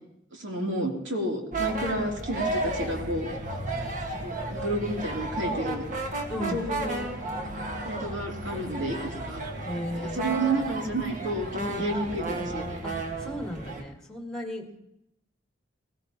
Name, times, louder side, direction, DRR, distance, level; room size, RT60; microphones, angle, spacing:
voice 1, 0.3-3.3 4.2-5.8 6.5-7.0 7.9-9.4 10.1-11.5 11.8-12.8 14.7-14.8, right 1 dB, 70° right, 0 dB, 3.1 m, -31 dB
sound 1, 1.5-13.8, right 2 dB, 40° right, 1.6 m, -33 dB
voice 2, 6.3-6.6 9.6-10.3 11.6-11.9 12.8-14.8, left 1 dB, 5° left, 2 dB, 1.8 m, -35 dB
20.5 x 16.0 x 2.9 m, 0.81 s
head